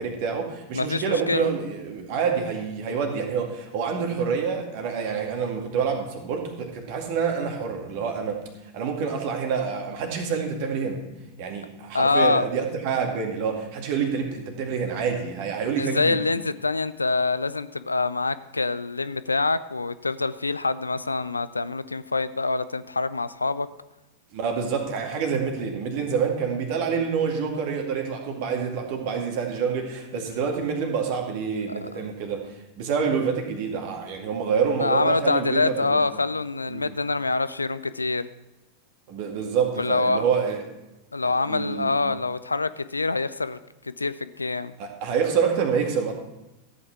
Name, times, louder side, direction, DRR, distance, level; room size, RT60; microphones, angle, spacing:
voice 1, 0.0-8.4 8.7-11.0 11.4-16.2 24.3-36.0 36.7-36.9 39.1-40.6 41.2-41.9 44.8-46.1, right 6 dB, 45° right, 3 dB, 2.2 m, -27 dB
voice 2, 0.7-1.5 11.9-12.5 15.7-23.7 31.7-31.9 34.8-38.3 39.8-40.2 41.1-43.6 43.8-44.7, left 3 dB, 80° left, 15 dB, 0.4 m, -25 dB
14.0 x 8.5 x 4.5 m, 1.0 s
figure-of-eight pair, 90°, 0 cm